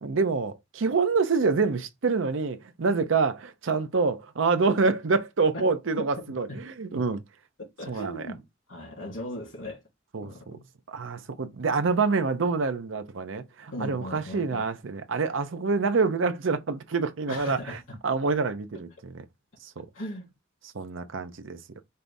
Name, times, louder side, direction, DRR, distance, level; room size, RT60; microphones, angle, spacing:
voice 1, 0.0-7.2 7.9-8.3 10.1-10.6 10.9-19.2 19.6-19.9 20.7-21.6, right 4 dB, 75° right, 0.7 m, -27 dB
voice 2, 7.8-8.4 8.7-9.8 10.2-10.6 13.7-14.7 17.3-17.8 19.9-20.3, left 1 dB, 85° left, 2.8 m, -38 dB
5.5 x 2.6 x 3.4 m
head